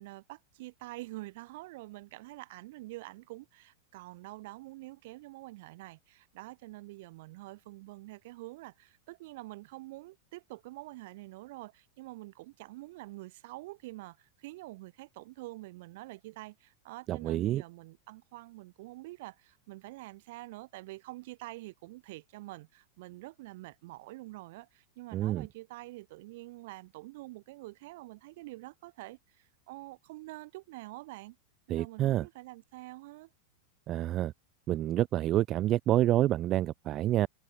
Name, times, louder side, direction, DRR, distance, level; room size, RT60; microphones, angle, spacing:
voice 1, 0.0-31.4 31.7-33.3, right 20 dB, 50° right, 3.4 m, -46 dB
voice 2, 17.1-17.6 25.1-25.5 31.7-32.3 33.9-34.3 34.7-37.3, right 13 dB, 35° right, 1.8 m, -28 dB
figure-of-eight pair, 90°, 0 cm